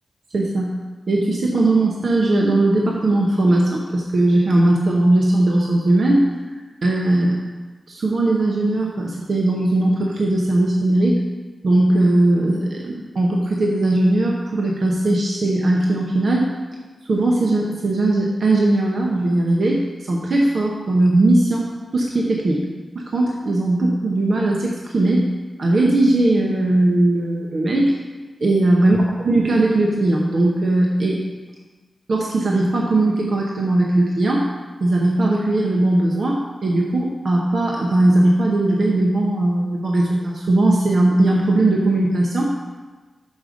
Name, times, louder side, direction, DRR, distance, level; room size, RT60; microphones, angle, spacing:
voice 1, 0.3-0.7 1.1-6.2 6.8-7.4 7.9-11.2 11.6-16.5 17.0-21.7 21.9-22.6 22.9-25.3 25.6-28.0 28.4-29.0 29.2-31.2 32.1-34.4 34.8-42.5, right 2 dB, 60° right, -2 dB, 0.8 m, -18 dB
5.4 x 5.0 x 6.3 m, 1.3 s
wide cardioid pair, 115°, 0 cm